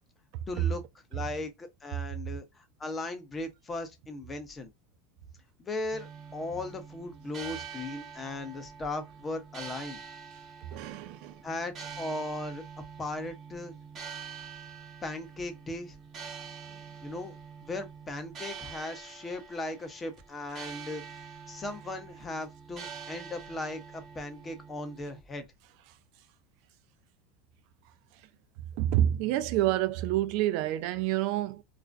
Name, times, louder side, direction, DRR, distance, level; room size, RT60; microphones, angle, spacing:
voice 1, 0.5-0.8 1.1-4.7 5.6-10.0 11.4-12.6 13.0-13.7 15.0-15.9 17.0-21.0 21.5-25.5, left 2 dB, 20° left, 0.6 m, -37 dB
sound 1, 5.9-25.2, right 6 dB, 35° right, 0.7 m, -46 dB
voice 2, 10.7-11.4 28.8-31.6, right 13 dB, 60° right, 0.3 m, -28 dB
2.4 x 2.1 x 2.4 m
supercardioid pair, 110°, 0 cm